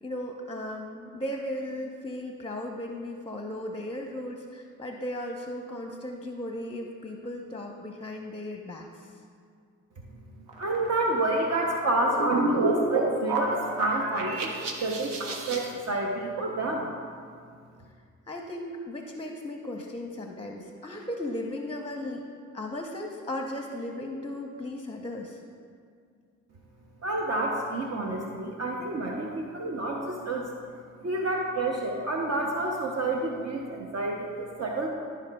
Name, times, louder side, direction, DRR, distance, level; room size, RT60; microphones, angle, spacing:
voice 1, 0.0-9.2 18.3-22.3 22.5-25.4, left 1 dB, 15° left, 2 dB, 0.7 m, -36 dB
sound 1, 10.5-15.7, right 2 dB, 75° right, 0.9 m, -30 dB
voice 2, 10.6-16.9 27.0-30.5 31.0-34.9, right 2 dB, 45° right, 0 dB, 0.8 m, -29 dB
12.0 x 4.9 x 2.3 m, 2.2 s
supercardioid pair, 50°, 34 cm